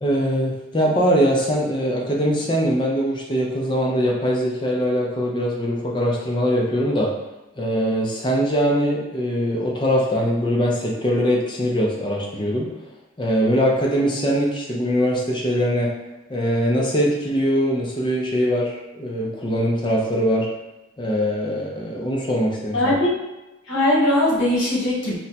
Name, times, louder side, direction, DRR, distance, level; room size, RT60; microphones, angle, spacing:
voice 1, 0.0-7.1 7.6-12.7 13.2-15.9 16.3-20.5 21.0-22.9, equal, 25° left, -2 dB, 0.5 m, -22 dB
voice 2, 22.7-23.2 23.7-25.2, left 1 dB, 65° left, -6 dB, 1.0 m, -20 dB
2.6 x 2.2 x 4.1 m, 1.0 s
head